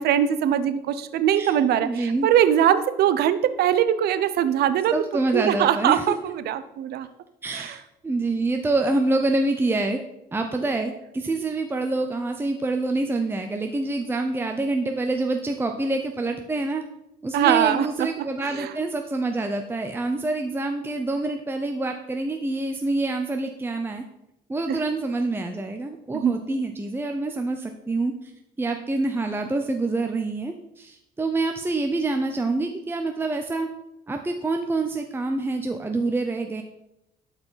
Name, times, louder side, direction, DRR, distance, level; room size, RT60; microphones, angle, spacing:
voice 1, 0.0-5.0 5.3-7.1 7.6-7.7 17.3-18.1 18.6-18.7 24.7-24.8 26.1-26.3, right 10 dB, 70° right, 12 dB, 0.8 m, -21 dB
voice 2, 1.8-2.3 4.9-6.2 7.4-10.0 10.3-16.8 17.2-24.0 24.5-28.3 28.6-33.7 34.1-36.6, right 2 dB, 15° right, 4 dB, 0.7 m, -26 dB
11.5 x 4.9 x 5.7 m, 0.85 s
cardioid pair, 110°, 17 cm